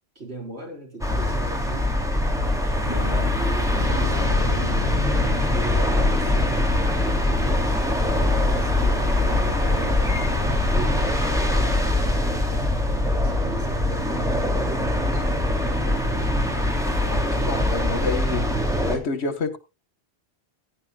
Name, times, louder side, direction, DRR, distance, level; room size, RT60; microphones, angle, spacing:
voice 1, 0.1-2.0 2.9-4.9 5.2-7.9 8.5-10.1 10.7-15.3 15.5-16.0, right 2 dB, 70° right, 4.7 m, -38 dB
sound 1, 1.0-19.0, left 1 dB, 5° right, 2.8 m, -23 dB
voice 2, 2.9-3.3 17.1-18.4 18.8-19.6, left 3 dB, 70° left, 1.7 m, -29 dB
sound 2, 3.8-12.2, left 4 dB, 30° left, 0.7 m, -28 dB
16.0 x 10.5 x 2.3 m
omnidirectional pair, 1.1 m